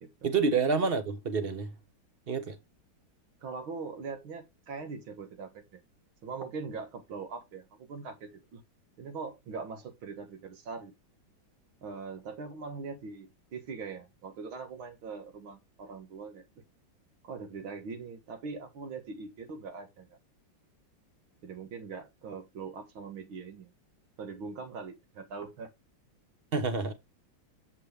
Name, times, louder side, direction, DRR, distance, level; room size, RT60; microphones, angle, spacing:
voice 1, 0.2-1.7 2.3-2.6 26.5-26.9, right 4 dB, 35° right, 1.0 m, -28 dB
voice 2, 3.4-5.8 6.2-8.6 9.0-10.9 11.8-16.5 17.2-20.1 21.4-23.7 24.2-25.7, right 4 dB, 85° right, 2.4 m, -41 dB
7.6 x 6.7 x 3.3 m
omnidirectional pair, 2.2 m